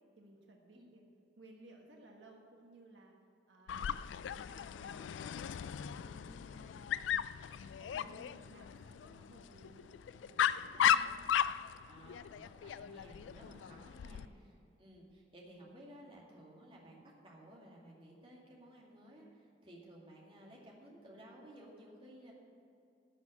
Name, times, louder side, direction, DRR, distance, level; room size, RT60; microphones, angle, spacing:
voice 1, 0.2-1.0 1.4-3.1 3.5-3.8 4.3-5.3 5.7-7.0 7.8-10.0 10.2-10.9 13.4-14.5, right 2 dB, 80° right, 1 dB, 1.4 m, -59 dB
Dog, 3.7-14.3, left 9 dB, 85° left, 0.3 m, -36 dB
voice 2, 10.7-11.1 11.9-14.5 14.8-22.3, right 1 dB, 30° right, -3 dB, 2.2 m, -56 dB
12.0 x 6.1 x 8.9 m, 2.6 s
head